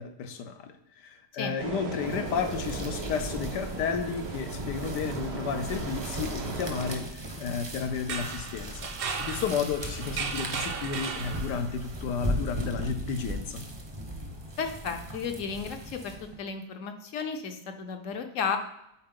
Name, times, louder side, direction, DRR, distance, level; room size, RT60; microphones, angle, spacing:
voice 1, 0.0-7.1 7.4-8.9 9.2-13.6, left 6 dB, 80° left, 8 dB, 1.4 m, -32 dB
sound 1, 1.6-7.0, right 4 dB, 80° right, 1.6 m, -37 dB
sound 2, 1.9-16.4, equal, 20° right, 0.7 m, -38 dB
sound 3, 7.9-11.8, right 5 dB, 65° right, 0.5 m, -36 dB
voice 2, 14.6-18.6, left 6 dB, 55° left, 6 dB, 1.0 m, -33 dB
8.8 x 4.4 x 3.7 m, 0.83 s
omnidirectional pair, 1.8 m